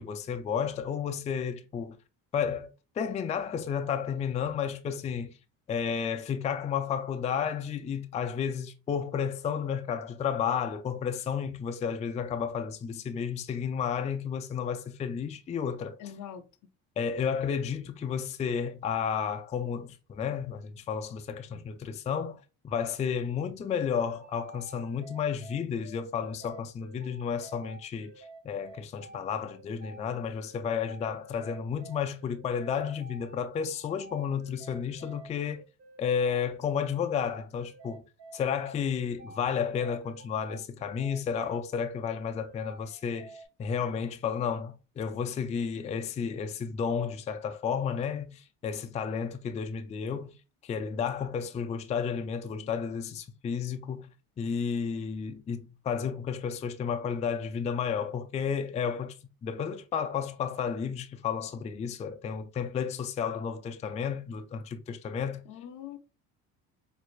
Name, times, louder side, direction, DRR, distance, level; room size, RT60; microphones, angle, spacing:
voice 1, 0.0-2.0 2.3-5.4 5.7-16.0 17.0-35.6 36.0-38.0 38.3-50.4 50.6-59.2 59.4-65.4, left 7 dB, 20° left, 0.3 m, -32 dB
voice 2, 16.0-16.4 65.5-66.0, left 9 dB, 65° left, 0.6 m, -42 dB
sound 1, 24.1-43.5, right 2 dB, 55° right, 1.1 m, -50 dB
4.3 x 2.4 x 2.4 m
cardioid pair, 100°, 32 cm